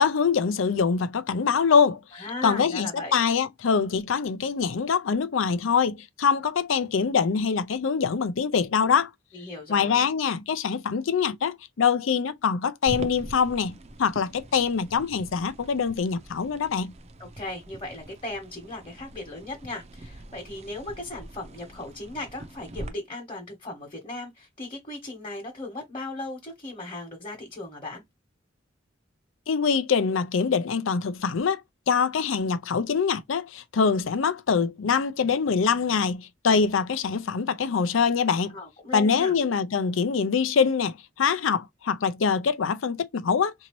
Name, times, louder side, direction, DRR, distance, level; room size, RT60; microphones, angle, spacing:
voice 1, 0.0-9.1 9.7-16.9 29.5-31.6 31.9-38.5 38.9-43.5, left 6 dB, 80° left, 0.5 m, -24 dB
voice 2, 2.1-3.2 9.3-10.0 17.2-28.0 38.5-39.3, left 2 dB, 30° left, 1.1 m, -37 dB
sound 1, 12.9-22.9, right 1 dB, 35° right, 0.5 m, -43 dB
3.9 x 2.7 x 3.0 m
head